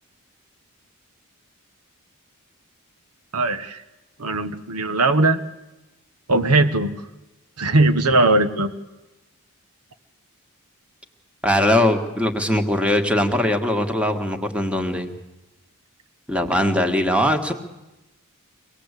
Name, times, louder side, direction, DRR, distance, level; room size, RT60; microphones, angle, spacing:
voice 1, 3.3-3.8 4.2-5.4 6.3-6.9 7.6-8.7, right 2 dB, 85° right, 9 dB, 1.3 m, -19 dB
voice 2, 11.4-15.1 16.3-17.5, left 1 dB, 5° right, 6 dB, 1.6 m, -21 dB
24.5 x 18.5 x 8.2 m, 1.0 s
head